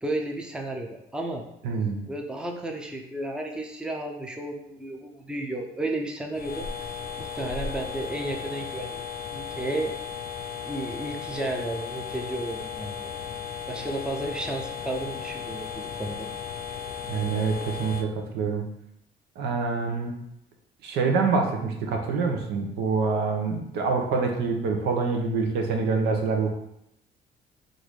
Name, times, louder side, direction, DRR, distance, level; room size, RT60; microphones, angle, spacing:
voice 1, 0.0-1.4 2.1-6.7 7.2-9.0 9.3-9.9 10.6-13.1 13.7-16.3, right 1 dB, 5° right, 2 dB, 0.6 m, -33 dB
voice 2, 1.6-2.0 17.1-18.6 19.4-20.1 20.8-26.5, right 4 dB, 80° right, 2 dB, 0.9 m, -26 dB
sound 1, 6.3-18.0, left 7 dB, 60° left, 0.6 m, -36 dB
3.8 x 2.7 x 4.8 m, 0.78 s
cardioid pair, 110°, 17 cm